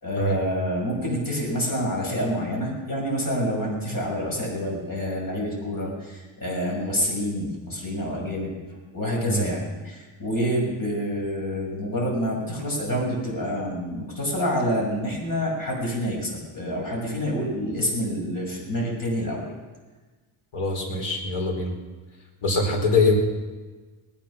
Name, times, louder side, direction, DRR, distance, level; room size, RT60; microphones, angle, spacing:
voice 1, 0.0-8.5 8.9-19.4, equal, 45° left, -2 dB, 6.2 m, -27 dB
voice 2, 20.5-21.7 22.4-23.2, left 3 dB, 75° left, 0 dB, 4.8 m, -23 dB
19.5 x 11.0 x 6.2 m, 1.3 s
wide cardioid pair, 125°, 49 cm